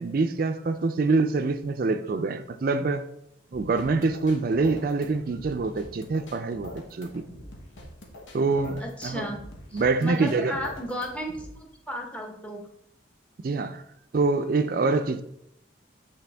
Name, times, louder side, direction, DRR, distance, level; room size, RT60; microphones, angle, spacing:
voice 1, 0.0-3.1 3.5-7.2 8.3-9.3 9.7-10.6 13.4-13.8 14.1-15.2, right 3 dB, 50° right, 0.4 m, -25 dB
sound 1, 3.5-11.5, left 1 dB, 80° left, 1.2 m, -44 dB
voice 2, 8.8-9.4 9.7-12.6, equal, 5° left, 0.8 m, -34 dB
8.3 x 3.4 x 3.4 m
head